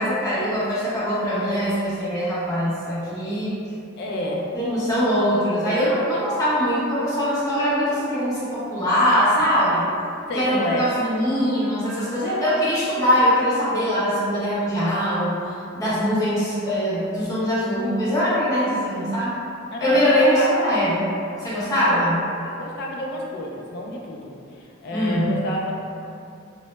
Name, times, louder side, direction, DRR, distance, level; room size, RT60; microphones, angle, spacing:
voice 1, 0.0-3.6 4.5-9.8 10.3-15.4 15.7-19.3 19.8-21.1 21.4-22.2 24.9-25.4, equal, 15° left, -11 dB, 0.7 m, -22 dB
voice 2, 4.0-4.5 6.1-6.2 10.3-10.9 19.7-21.2 21.6-22.1 22.4-25.7, left 1 dB, 50° left, -1 dB, 0.3 m, -29 dB
2.0 x 2.0 x 3.0 m, 2.5 s
head